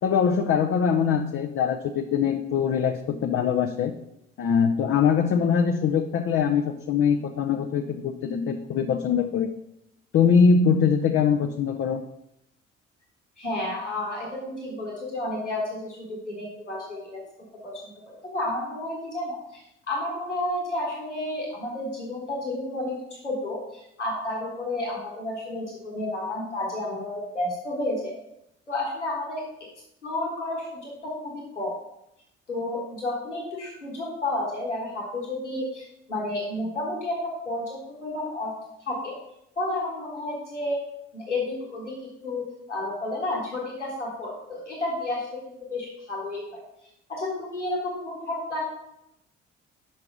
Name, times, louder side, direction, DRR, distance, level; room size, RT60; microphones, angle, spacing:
voice 1, 0.0-3.9 4.4-9.5 10.1-12.0, left 6 dB, 40° left, 2 dB, 0.6 m, -22 dB
voice 2, 13.4-17.2 17.6-19.6 19.9-28.1 28.7-29.5 30.0-31.7 32.5-38.5 38.8-39.2 39.6-40.8 41.1-41.9 42.2-46.6 47.1-48.6, left 1 dB, 90° left, -3 dB, 1.3 m, -31 dB
5.9 x 5.3 x 5.7 m, 0.82 s
figure-of-eight pair, 45°, 35 cm